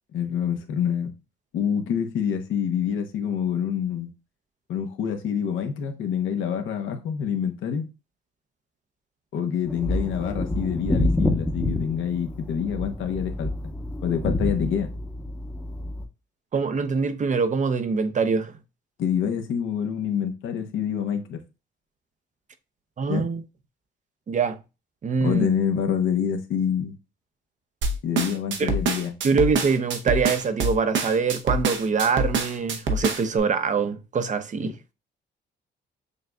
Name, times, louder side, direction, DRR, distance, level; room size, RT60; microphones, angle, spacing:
voice 1, 0.1-1.1 1.5-4.1 4.7-7.8 9.3-13.5 14.0-14.9 19.0-21.4 23.1-23.3 25.2-26.9 28.0-29.1, left 8 dB, 80° left, 0.8 m, -26 dB
sound 1, 9.7-16.0, left 1 dB, 5° left, 0.8 m, -28 dB
voice 2, 16.5-18.5 23.0-23.4 24.3-24.6 25.0-25.5 28.6-28.8 29.2-34.8, right 5 dB, 40° right, 0.6 m, -24 dB
sound 2, 27.8-33.4, right 3 dB, 70° right, 0.9 m, -25 dB
6.6 x 2.5 x 2.2 m
cardioid pair, 90°, 20 cm